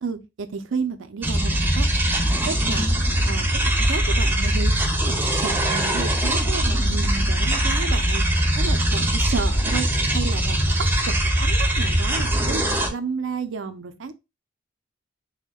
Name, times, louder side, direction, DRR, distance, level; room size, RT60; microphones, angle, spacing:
voice 1, 0.0-1.9 2.5-3.0 3.3-3.5 3.7-4.8 5.0-8.2 8.6-9.9 10.1-12.6 12.9-14.1, right 5 dB, 85° right, 0.5 m, -31 dB
sound 1, 1.2-12.9, right 1 dB, 10° right, 0.6 m, -21 dB
6.1 x 2.1 x 2.3 m
head